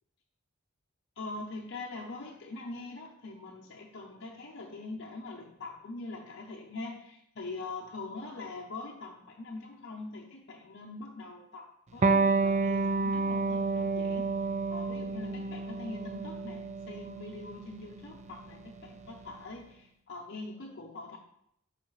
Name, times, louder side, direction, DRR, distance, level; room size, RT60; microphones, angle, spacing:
voice 1, 1.2-14.3 14.7-21.2, left 3 dB, 55° left, -1 dB, 0.6 m, -43 dB
Electric guitar, 12.0-19.2, right 3 dB, 35° right, 0.4 m, -30 dB
7.1 x 5.0 x 3.1 m, 0.74 s
head